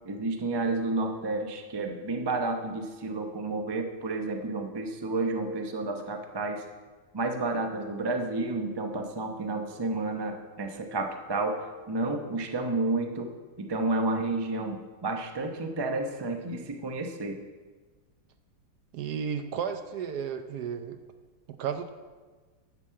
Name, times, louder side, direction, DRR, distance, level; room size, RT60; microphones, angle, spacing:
voice 1, 0.0-6.6 7.1-11.6 11.9-13.3 13.6-17.4, right 2 dB, 40° right, 4 dB, 0.3 m, -31 dB
voice 2, 18.9-21.0 21.6-21.9, right 7 dB, 70° right, 9 dB, 1.1 m, -33 dB
10.5 x 6.1 x 7.5 m, 1.4 s
omnidirectional pair, 2.1 m